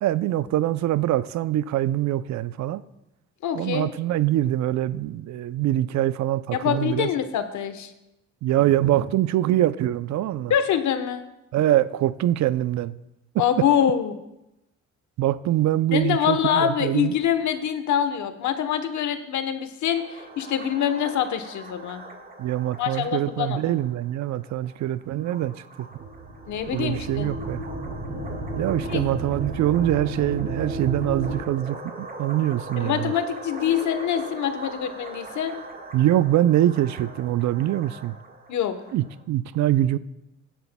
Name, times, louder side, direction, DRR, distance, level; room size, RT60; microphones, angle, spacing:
voice 1, 0.0-2.8 3.5-7.1 8.4-10.5 11.5-12.9 15.2-17.1 22.4-25.9 26.7-27.6 28.6-33.1 35.9-38.2 38.9-40.0, right 13 dB, 70° right, 0.5 m, -24 dB
voice 2, 3.4-3.9 6.5-7.9 10.5-11.2 13.4-14.2 15.9-22.0 22.8-23.6 26.5-27.3 28.9-29.0 32.8-35.6 38.5-38.8, left 9 dB, 75° left, 1.0 m, -25 dB
sound 1, 19.9-39.2, right 2 dB, 30° right, 1.5 m, -42 dB
sound 2, 26.0-31.3, right 2 dB, 45° right, 2.4 m, -33 dB
17.0 x 10.0 x 2.2 m
cardioid pair, 90°, 30 cm